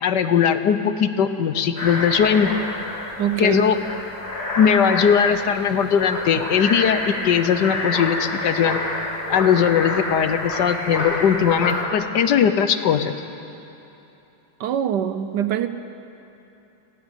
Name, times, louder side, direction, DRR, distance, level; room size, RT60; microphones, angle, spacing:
voice 1, 0.0-2.5 3.4-3.8 4.6-8.8 9.3-13.1, left 8 dB, 65° left, 10 dB, 1.3 m, -19 dB
sound 1, 1.8-11.8, left 1 dB, 50° left, 3.2 m, -28 dB
voice 2, 3.2-3.6 14.6-15.7, right 9 dB, 70° right, 10 dB, 1.3 m, -23 dB
29.0 x 10.5 x 9.0 m, 3.0 s
omnidirectional pair, 2.1 m